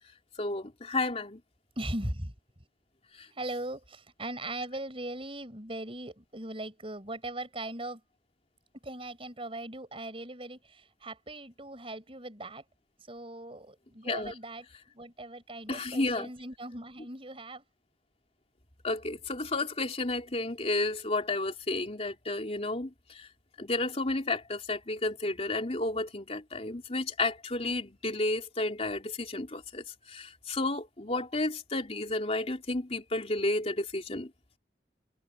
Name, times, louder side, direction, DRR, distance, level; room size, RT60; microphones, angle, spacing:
voice 1, 0.4-1.4 3.1-3.3 14.0-14.3 15.7-16.3 18.8-23.3 23.6-34.3, left 2 dB, 35° left, 3.3 m, -32 dB
voice 2, 1.8-2.3 3.3-8.0 8.8-12.6 13.1-17.6, right 1 dB, 30° right, 6.6 m, -39 dB
head